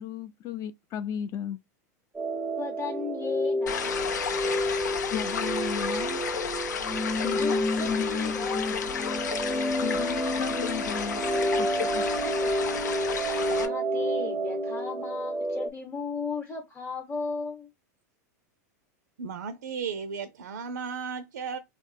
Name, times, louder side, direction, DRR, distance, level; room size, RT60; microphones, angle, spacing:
voice 1, 0.0-1.6 5.1-6.2 7.2-8.8 9.8-11.2 11.6-12.1, left 10 dB, 40° left, 0.4 m, -35 dB
sound 1, 2.1-15.7, equal, 10° right, 0.6 m, -29 dB
voice 2, 2.6-4.1 7.2-8.9 12.0-12.8 13.5-17.7, left 5 dB, 20° left, 0.8 m, -36 dB
sound 2, 3.7-13.7, left 7 dB, 85° left, 0.6 m, -32 dB
voice 3, 19.2-21.6, right 6 dB, 85° right, 0.4 m, -35 dB
3.1 x 2.0 x 3.3 m
hypercardioid pair, 100°, 9 cm